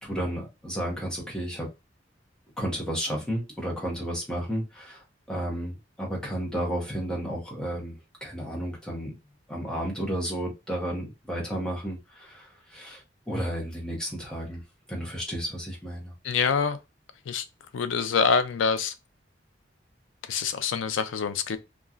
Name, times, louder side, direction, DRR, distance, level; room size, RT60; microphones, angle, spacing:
voice 1, 0.0-1.7 2.6-9.1 9.5-14.6 14.9-16.1, equal, 5° left, 0.9 m, -32 dB
voice 2, 16.2-16.8 17.3-17.5 17.7-18.9 20.2-21.6, left 6 dB, 90° left, 0.4 m, -25 dB
2.8 x 2.3 x 2.4 m
head